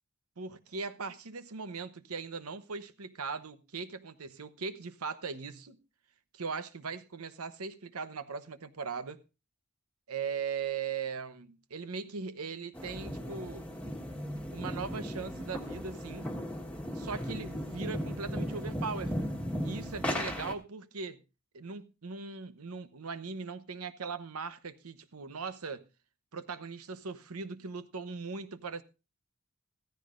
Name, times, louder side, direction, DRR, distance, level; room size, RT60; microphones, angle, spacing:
voice 1, 0.4-5.8 6.3-9.2 10.1-13.6 14.5-16.3 16.9-19.1 19.6-21.2 21.5-25.8 26.3-28.8, right 5 dB, 85° right, 0.9 m, -39 dB
sound 1, 12.7-20.5, equal, 5° left, 1.4 m, -36 dB
15.0 x 14.0 x 2.5 m
head